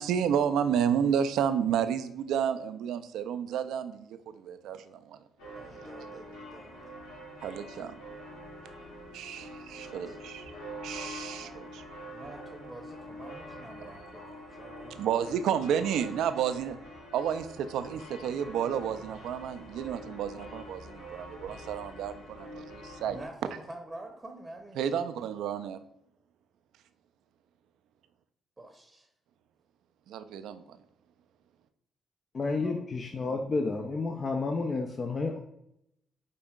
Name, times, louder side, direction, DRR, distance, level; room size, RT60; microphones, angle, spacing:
voice 1, 0.0-4.2 4.4-5.2 7.4-8.0 9.1-10.4 10.8-11.8 15.0-16.8 17.1-23.2 24.8-25.8 30.1-30.8, right 8 dB, 70° right, 11 dB, 0.3 m, -31 dB
sound 1, 5.4-23.3, equal, 80° left, 1.0 m, -45 dB
voice 2, 5.5-6.8 9.7-10.2 12.1-15.0 15.4-15.5 23.0-24.9 28.6-29.1 32.4-32.8, right 2 dB, 25° right, 4 dB, 0.7 m, -47 dB
voice 3, 32.3-35.4, left 3 dB, 45° left, 4 dB, 0.5 m, -31 dB
5.2 x 4.2 x 2.3 m, 0.79 s
hypercardioid pair, 40°, 0 cm